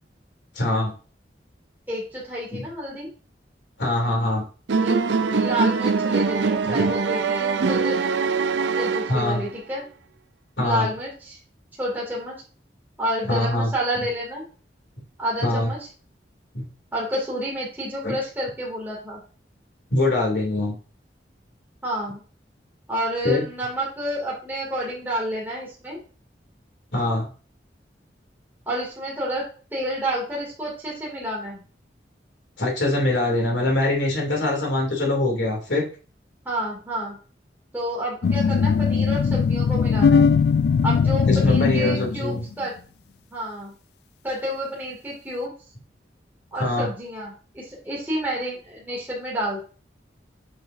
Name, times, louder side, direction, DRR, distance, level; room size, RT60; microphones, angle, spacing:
voice 1, 0.5-0.9 2.5-2.6 3.8-4.4 6.7-6.9 9.1-9.4 10.6-10.9 13.3-13.7 15.4-15.7 16.5-16.7 18.0-18.1 19.9-20.7 23.2-23.4 26.9-27.3 32.6-35.9 41.3-42.4 46.6-46.9, left 2 dB, 80° left, 0 dB, 2.7 m, -23 dB
voice 2, 1.9-3.1 4.8-8.2 8.7-9.8 10.6-11.4 11.8-12.4 13.0-14.5 15.2-15.8 16.9-19.2 21.8-22.2 22.9-26.0 28.7-29.4 29.7-31.6 36.4-37.2 37.7-40.3 40.8-42.7 43.3-43.7 44.2-45.5 46.5-49.6, equal, 10° right, -5 dB, 2.5 m, -29 dB
sound 1, 4.7-9.6, right 4 dB, 80° right, 0.5 m, -23 dB
sound 2, 38.2-42.4, left 5 dB, 60° left, 0.3 m, -20 dB
7.7 x 5.6 x 2.6 m, 0.37 s
head